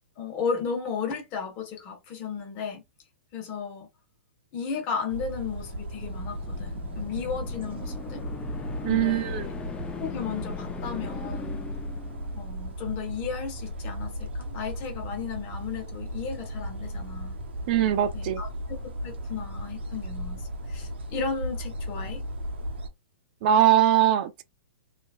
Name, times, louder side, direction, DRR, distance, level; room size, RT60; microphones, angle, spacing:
voice 1, 0.2-2.8 3.3-3.9 4.5-8.2 8.8-9.5 10.0-11.6 12.3-17.3 18.1-22.2, left 6 dB, 40° left, 1.1 m, -34 dB
sound 1, 5.1-22.9, equal, 75° right, 0.8 m, -36 dB
sound 2, 5.7-12.7, left 6 dB, 15° left, 0.5 m, -40 dB
voice 2, 8.8-9.5 17.7-18.4 23.4-24.4, right 11 dB, 50° right, 0.5 m, -21 dB
3.0 x 2.6 x 2.4 m
hypercardioid pair, 115°, 6 cm